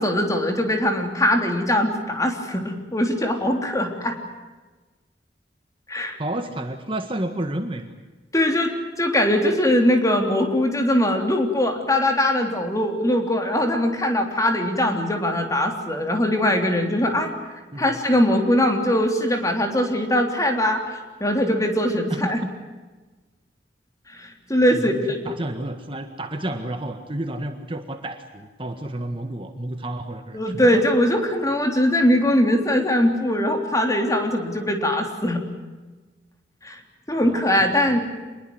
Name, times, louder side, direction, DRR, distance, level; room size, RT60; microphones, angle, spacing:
voice 1, 0.0-4.2 5.9-6.2 8.3-17.3 17.8-22.4 24.1-25.3 30.3-35.4 36.6-36.8 37.1-38.0, left 1 dB, 20° left, 3 dB, 3.5 m, -21 dB
voice 2, 6.2-7.9 17.7-18.0 22.1-22.5 24.7-30.8 37.2-37.5, right 1 dB, 30° right, 6 dB, 1.7 m, -31 dB
27.0 x 21.5 x 7.9 m, 1.3 s
head